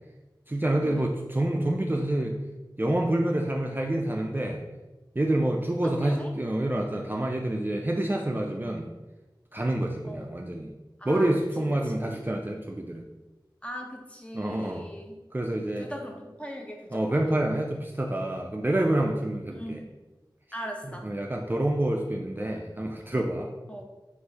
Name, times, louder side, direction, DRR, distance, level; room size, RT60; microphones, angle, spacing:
voice 1, 0.5-2.4 2.8-4.6 5.2-8.9 9.5-10.7 11.1-13.0 14.3-14.8 15.3-15.9 16.9-19.8 21.0-23.5, right 1 dB, 25° right, 0 dB, 0.4 m, -27 dB
voice 2, 5.8-6.3 10.0-10.4 11.0-11.3 11.6-11.9 13.6-15.2 15.6-17.4 19.6-20.0 20.5-21.1 23.7-23.8, equal, 15° left, 1 dB, 0.7 m, -40 dB
3.5 x 2.5 x 4.3 m, 1.1 s
wide cardioid pair, 40°, 8 cm